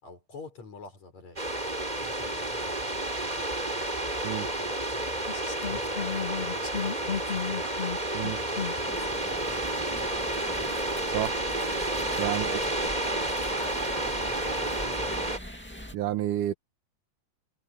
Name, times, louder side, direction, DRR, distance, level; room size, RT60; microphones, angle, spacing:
voice 1, 0.0-7.8 8.1-10.8 12.2-12.7 14.0-15.3, left 3 dB, 60° left, 7.8 m, -48 dB
sound 1, 1.4-15.4, right 1 dB, 15° right, 3.9 m, -31 dB
sound 2, 4.5-4.6 5.3-8.8 9.6-9.7 10.4-10.5 11.1-11.2 11.9-12.0 12.6-12.7 13.4-14.2 14.7-15.0, left 7 dB, 35° left, 1.0 m, -35 dB
sound 3, 8.8-15.9, equal, 5° left, 1.8 m, -42 dB
voice 2, 15.9-16.5, right 12 dB, 85° right, 2.6 m, -29 dB
omnidirectional pair, 3.6 m